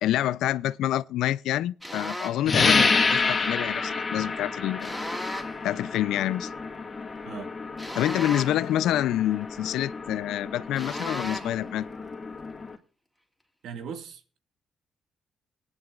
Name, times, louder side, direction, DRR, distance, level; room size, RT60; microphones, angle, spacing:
voice 1, 0.0-4.9 5.6-6.5 7.9-11.9, left 13 dB, 85° left, 0.4 m, -27 dB
sound 1, 1.8-2.5 4.8-5.7 7.8-8.8 10.8-11.6, equal, 5° right, 2.8 m, -36 dB
sound 2, 2.5-12.8, left 4 dB, 30° left, 2.0 m, -29 dB
voice 2, 13.6-14.4, right 7 dB, 75° right, 2.0 m, -39 dB
19.5 x 11.0 x 2.4 m
cardioid pair, 90°, 0 cm